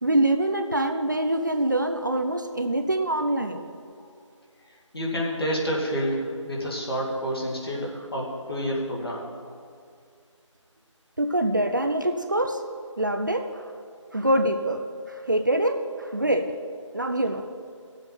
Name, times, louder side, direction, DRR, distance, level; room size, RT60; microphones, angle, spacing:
voice 1, 0.0-3.7 11.2-12.6 13.0-13.7 14.1-16.5 16.9-17.4, right 1 dB, 40° right, 6 dB, 0.5 m, -25 dB
voice 2, 4.9-9.3, equal, 50° left, -3 dB, 2.4 m, -28 dB
17.5 x 7.7 x 4.4 m, 2.3 s
figure-of-eight pair, 175°, 16 cm